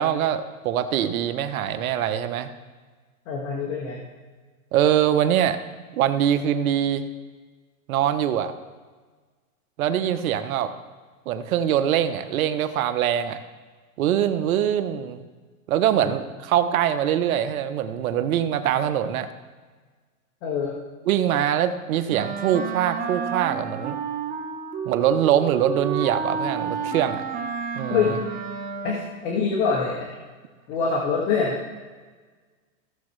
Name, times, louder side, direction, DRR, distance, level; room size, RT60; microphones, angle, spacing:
voice 1, 0.0-2.5 4.7-5.6 5.9-7.1 7.9-8.5 9.8-10.7 11.3-13.4 14.0-15.2 15.7-19.3 21.1-24.0 24.8-27.2 27.7-28.2, right 10 dB, 70° right, 10 dB, 0.9 m, -23 dB
voice 2, 3.3-4.0 15.9-16.1 20.4-20.8 27.9-28.2 28.8-30.1 30.7-31.6, left 5 dB, 55° left, -2 dB, 1.8 m, -25 dB
Wind instrument woodwind instrument, 22.1-29.3, right 6 dB, 20° right, 1.0 m, -31 dB
15.5 x 7.2 x 3.2 m, 1.4 s
hypercardioid pair, 125°, 43 cm